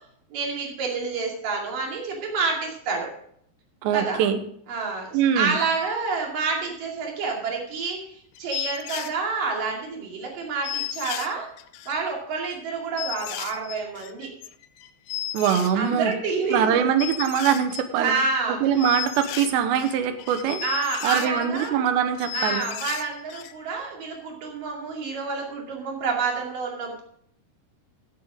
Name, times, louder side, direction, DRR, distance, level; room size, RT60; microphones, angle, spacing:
voice 1, 0.3-3.1 3.9-4.2 4.7-11.5 11.9-14.3 15.8-16.9 17.9-18.9 20.6-21.8 22.3-27.0, right 4 dB, 55° right, 0 dB, 3.9 m, -28 dB
voice 2, 3.8-4.4 5.1-5.5 15.3-16.1 16.5-18.1 18.5-20.6 21.0-22.6, right 8 dB, 85° right, 10 dB, 3.2 m, -23 dB
sound 1, 7.9-8.0 8.4-9.1 9.7-9.8 10.0-10.1 10.3-10.4 10.6-12.0 12.5-12.6 13.0-16.1 16.4-16.7 17.0-18.3 18.6-21.9 22.1-23.5 23.8-23.9, left 13 dB, 80° left, 2.2 m, -34 dB
15.0 x 8.2 x 3.7 m, 0.67 s
omnidirectional pair, 4.9 m